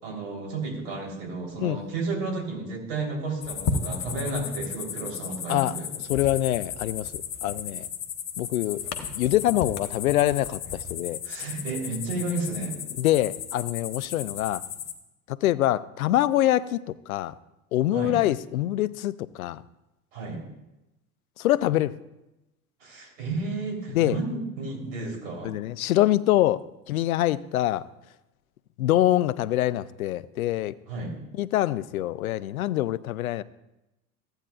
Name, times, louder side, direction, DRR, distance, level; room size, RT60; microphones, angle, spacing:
voice 1, 0.0-5.9 11.2-12.8 17.9-18.2 20.1-20.5 22.8-25.5 30.9-31.2, right 3 dB, 65° right, 1 dB, 3.5 m, -32 dB
sound 1, 3.4-14.9, left 6 dB, 50° left, 1.4 m, -34 dB
voice 2, 6.1-7.9 8.4-8.8 9.2-11.2 13.0-14.6 15.3-17.3 17.7-19.6 21.4-22.0 23.9-24.2 25.4-27.8 28.8-30.7 31.4-33.4, left 14 dB, 75° left, 18 dB, 0.5 m, -25 dB
15.0 x 8.9 x 2.4 m, 0.95 s
hypercardioid pair, 75°, 43 cm